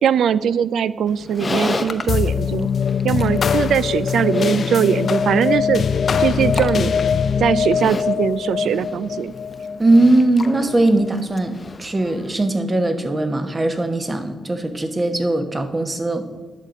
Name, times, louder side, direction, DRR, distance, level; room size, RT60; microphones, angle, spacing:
voice 1, 0.0-2.7 3.0-5.8 6.2-6.9 7.4-9.3, right 8 dB, 80° right, 17 dB, 0.3 m, -20 dB
Livestock farm animals working animals, 1.1-12.3, left 3 dB, 30° left, 0.8 m, -33 dB
sound 1, 2.1-10.8, left 6 dB, 60° left, 0.4 m, -22 dB
voice 2, 9.8-16.3, right 2 dB, 25° right, 8 dB, 1.1 m, -19 dB
10.5 x 7.2 x 5.2 m, 1.3 s
cardioid pair, 95°, 0 cm